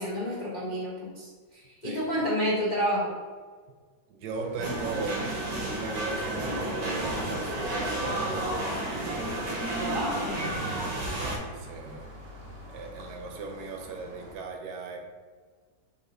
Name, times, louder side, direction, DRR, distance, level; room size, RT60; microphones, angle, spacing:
voice 1, 0.0-3.1 9.8-10.6, equal, 80° left, -6 dB, 0.4 m, -30 dB
voice 2, 1.8-2.3 4.1-5.3 5.6-8.8 11.5-12.2 12.7-15.0, right 4 dB, 70° right, 2 dB, 1.0 m, -38 dB
sound 1, 4.3-14.4, right 1 dB, 50° right, 0.7 m, -45 dB
sound 2, 4.6-11.4, right 1 dB, 90° right, 1.6 m, -31 dB
4.1 x 2.7 x 3.9 m, 1.5 s
omnidirectional pair, 2.0 m